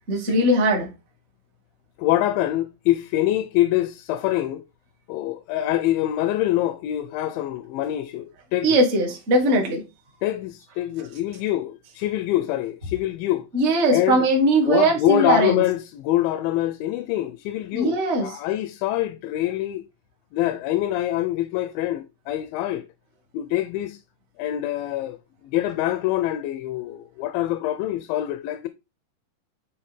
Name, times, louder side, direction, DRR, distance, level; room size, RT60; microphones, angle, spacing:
voice 1, 0.1-0.9 8.6-9.8 13.5-15.6 17.7-18.4, right 1 dB, 35° right, 1.1 m, -20 dB
voice 2, 2.0-4.6 5.1-8.7 10.2-13.5 13.9-14.3 14.6-19.8 20.3-22.9 23.3-24.0 24.4-25.2 25.4-28.7, left 14 dB, 90° left, 2.3 m, -25 dB
9.1 x 3.3 x 3.2 m
omnidirectional pair, 4.0 m